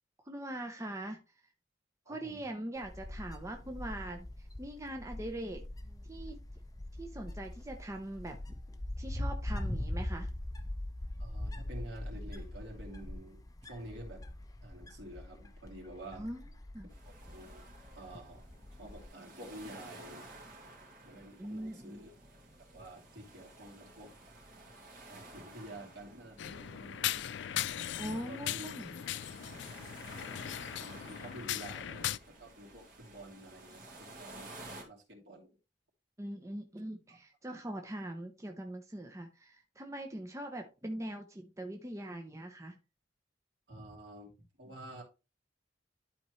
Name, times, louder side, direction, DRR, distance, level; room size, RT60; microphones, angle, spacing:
voice 1, 0.2-1.2 2.1-5.6 6.0-6.4 7.0-8.4 9.0-10.3 16.2-16.4 16.7-16.9 21.4-22.0 28.0-29.0 36.2-42.8, right 1 dB, 15° right, 4 dB, 0.7 m, -42 dB
voice 2, 2.0-2.4 11.2-14.2 14.6-16.3 17.0-17.6 17.9-18.4 18.8-20.2 21.0-22.1 22.7-24.1 25.1-27.4 28.0-28.7 30.8-34.5 34.8-35.5 43.7-45.0, right 1 dB, 70° right, -1 dB, 2.9 m, -49 dB
Wind, 2.8-19.1, left 1 dB, 20° left, 0.7 m, -42 dB
sound 1, 16.9-34.8, right 2 dB, 50° right, 2.8 m, -53 dB
sound 2, 26.4-32.2, left 11 dB, 75° left, 0.4 m, -38 dB
11.5 x 4.3 x 3.2 m, 0.30 s
head